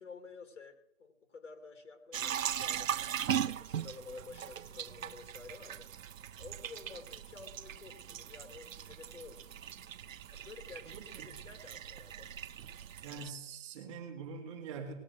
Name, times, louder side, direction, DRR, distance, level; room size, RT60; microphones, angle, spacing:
voice 1, 0.0-3.0 3.4-5.9 6.4-9.5 10.3-12.3, left 4 dB, 70° left, 6 dB, 2.9 m, -51 dB
sound 1, 2.1-13.3, right 9 dB, 90° right, 0.6 m, -39 dB
voice 2, 13.0-15.0, right 5 dB, 25° right, 4 dB, 1.7 m, -44 dB
18.5 x 6.3 x 7.7 m, 0.80 s
hypercardioid pair, 160°, 38 cm